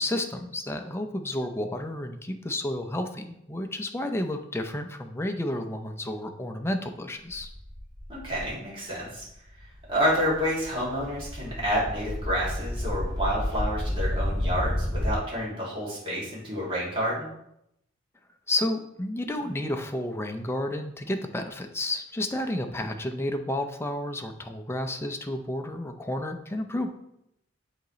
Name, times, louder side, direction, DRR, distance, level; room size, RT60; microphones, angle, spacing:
voice 1, 0.0-7.5 18.5-26.9, left 1 dB, 15° left, 4 dB, 0.5 m, -31 dB
sound 1, 7.3-8.5 9.1-9.3 9.6-15.1, left 1 dB, 55° right, 2.6 m, -31 dB
voice 2, 8.1-9.2 9.9-17.3, equal, 30° right, -6 dB, 2.5 m, -29 dB
9.1 x 3.9 x 3.1 m, 0.79 s
head